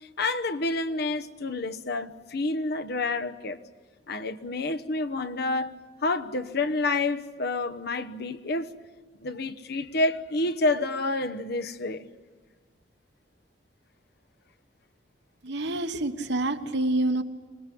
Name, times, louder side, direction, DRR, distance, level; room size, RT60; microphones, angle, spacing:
voice 1, 0.2-3.6 4.1-5.7 6.0-8.7 9.2-12.1, left 2 dB, 60° left, 1.1 m, -28 dB
voice 2, 15.4-17.2, right 2 dB, 65° right, 1.2 m, -27 dB
25.5 x 20.0 x 8.5 m
head